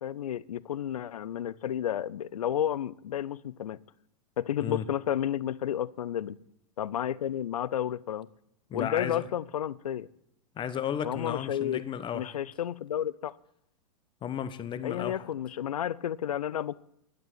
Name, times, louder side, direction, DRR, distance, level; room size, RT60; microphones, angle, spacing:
voice 1, 0.0-3.8 4.4-6.4 6.8-8.3 8.7-10.1 11.0-11.8 12.1-13.3 14.8-16.8, left 10 dB, 80° left, 0.6 m, -31 dB
voice 2, 8.7-9.2 10.6-12.3 14.2-15.2, left 9 dB, 25° left, 1.0 m, -34 dB
11.5 x 8.0 x 9.2 m
hypercardioid pair, 105°, 18 cm